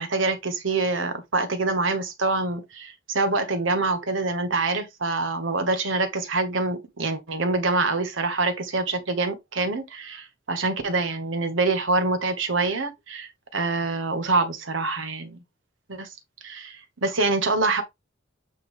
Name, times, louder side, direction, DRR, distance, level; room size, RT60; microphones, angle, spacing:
voice 1, 0.0-15.4 15.9-16.1 16.4-17.8, right 3 dB, 65° right, 1.3 m, -25 dB
8.5 x 3.2 x 3.6 m
head